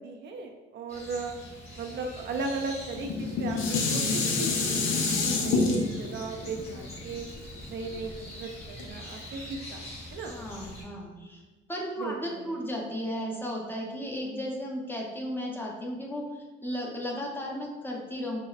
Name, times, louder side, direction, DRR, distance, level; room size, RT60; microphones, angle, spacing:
voice 1, 0.0-1.4 1.8-7.3 7.7-9.8 10.1-10.3 12.0-12.5, right 3 dB, 60° right, 4 dB, 0.4 m, -37 dB
sound 1, 0.9-10.8, left 1 dB, 30° left, 1.3 m, -44 dB
Dishes pots and pans, 3.0-8.2 8.8-8.9, left 3 dB, 80° left, 0.6 m, -28 dB
voice 2, 5.3-5.7 10.3-11.4 11.7-18.4, equal, 10° left, -1 dB, 0.6 m, -35 dB
4.7 x 2.1 x 2.4 m, 1.3 s
cardioid pair, 90°, 20 cm